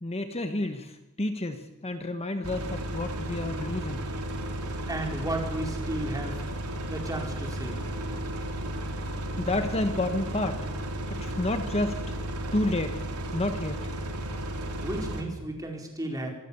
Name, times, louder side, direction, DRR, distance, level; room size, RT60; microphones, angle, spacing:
voice 1, 0.0-4.1 9.4-10.6 11.2-12.0 12.5-13.0 13.3-13.8, left 1 dB, 30° left, 7 dB, 1.3 m, -30 dB
sound 1, 2.4-15.2, right 1 dB, 80° right, 3.8 m, -34 dB
voice 2, 4.9-6.4 6.9-7.8 14.8-16.3, right 1 dB, 15° right, 2 dB, 4.5 m, -33 dB
25.5 x 19.0 x 7.1 m, 1.1 s
head